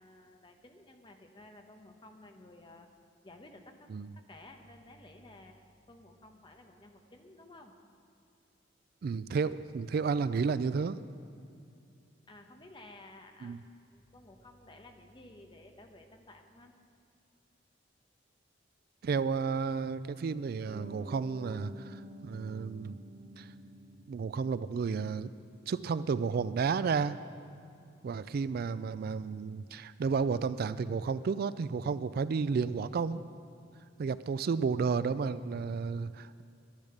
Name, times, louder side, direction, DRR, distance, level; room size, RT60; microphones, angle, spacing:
voice 1, 0.0-2.9 3.2-3.9 4.2-5.6 5.9-7.8 12.3-13.6 13.9-16.7, left 2 dB, 25° left, 4 dB, 1.0 m, -54 dB
voice 2, 9.0-11.0 13.4-13.6 19.0-23.0 23.4-23.5 24.1-25.3 25.7-27.2 28.0-33.2 34.0-36.4, right 5 dB, 55° right, 15 dB, 0.3 m, -32 dB
Piano, 20.7-27.2, right 2 dB, 85° right, 2.3 m, -50 dB
12.0 x 10.5 x 6.6 m, 2.6 s
head